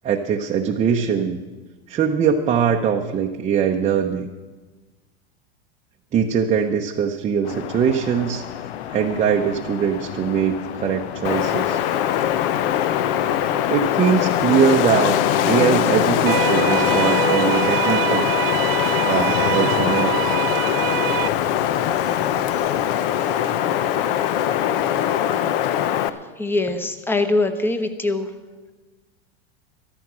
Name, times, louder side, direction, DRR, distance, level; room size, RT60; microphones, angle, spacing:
voice 1, 0.0-1.4 1.9-4.3 6.1-8.4 8.9-11.8 13.7-15.1 15.4-18.3 19.0-20.2, right 7 dB, 20° right, 2 dB, 0.8 m, -21 dB
sound 1, 7.4-22.9, left 10 dB, 90° left, 0.8 m, -34 dB
Wind, 11.2-26.1, left 10 dB, 60° left, 0.9 m, -21 dB
sound 2, 16.3-21.3, right 15 dB, 65° right, 0.6 m, -25 dB
voice 2, 26.4-28.3, left 2 dB, 5° left, 8 dB, 1.0 m, -22 dB
13.5 x 13.0 x 6.1 m, 1.3 s
supercardioid pair, 140°, 31 cm